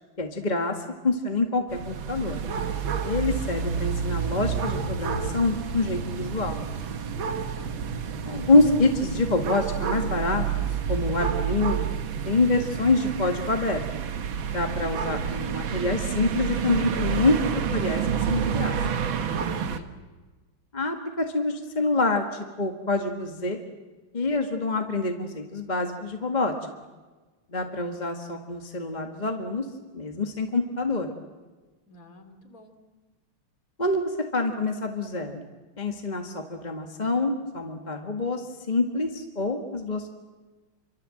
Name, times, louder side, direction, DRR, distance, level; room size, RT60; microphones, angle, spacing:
voice 1, 0.2-2.4 3.0-6.6 8.3-10.4 10.9-11.9 12.2-13.8 14.5-17.3 17.7-18.7 20.7-23.6 24.1-26.5 27.5-29.6 29.9-31.1 33.8-35.4 35.8-40.2, left 2 dB, 20° left, 3 dB, 1.7 m, -26 dB
sound 1, 1.7-19.8, right 7 dB, 70° right, 2.2 m, -29 dB
voice 2, 7.1-7.8 19.3-19.9 31.9-32.7, left 1 dB, 40° left, 5 dB, 3.3 m, -50 dB
27.5 x 25.0 x 7.7 m, 1.3 s
omnidirectional pair, 2.3 m